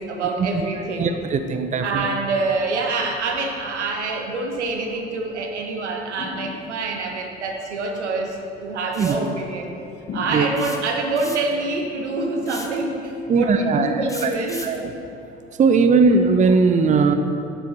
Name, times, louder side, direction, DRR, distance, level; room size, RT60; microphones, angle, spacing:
voice 1, 0.0-1.1 1.8-9.7 10.1-14.6, right 3 dB, 85° right, 2 dB, 1.1 m, -26 dB
voice 2, 1.0-2.1 9.0-9.2 10.3-10.5 13.3-14.3 14.6-14.9 15.6-17.1, right 4 dB, 20° right, 7 dB, 0.6 m, -18 dB
sound 1, 6.2-7.0 10.1-11.0, left 3 dB, 45° left, 1.5 m, -34 dB
sound 2, 8.9-9.3 10.6-11.6 12.4-12.8 14.1-14.8, left 2 dB, 10° left, 1.0 m, -36 dB
11.5 x 7.8 x 3.3 m, 2.8 s
hypercardioid pair, 60°, 34 cm